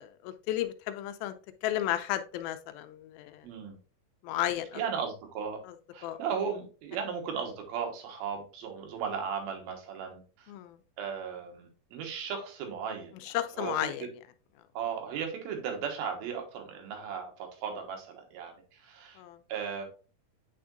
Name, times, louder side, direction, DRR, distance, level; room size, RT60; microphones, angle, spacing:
voice 1, 0.0-1.4 1.6-3.5 4.2-4.8 5.7-5.8 6.0-6.2 10.5-10.8 13.2-14.1 19.2-19.4, left 13 dB, 85° left, 10 dB, 2.4 m, -33 dB
voice 2, 3.4-3.8 4.8-5.6 5.9-10.5 11.0-13.7 14.7-19.2 19.5-19.9, right 7 dB, 85° right, 3 dB, 3.1 m, -36 dB
8.6 x 4.6 x 2.5 m, 0.35 s
omnidirectional pair, 4.3 m